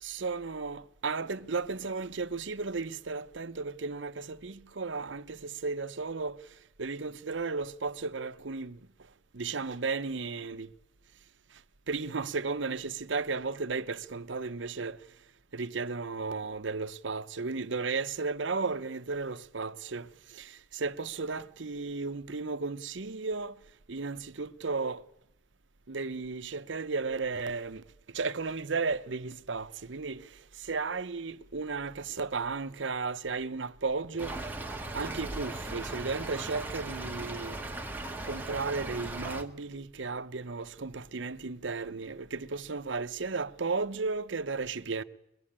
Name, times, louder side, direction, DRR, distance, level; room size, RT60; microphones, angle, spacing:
voice 1, 0.0-6.4 6.8-8.8 9.3-10.7 11.9-15.0 15.5-23.6 23.9-25.0 25.9-27.8 28.1-30.3 30.6-34.4 34.9-37.6 38.2-45.0, right 4 dB, 75° right, 0.9 m, -34 dB
Stream / Trickle dribble, 34.2-39.4, right 2 dB, 10° right, 1.5 m, -38 dB
24.0 x 21.5 x 8.8 m
head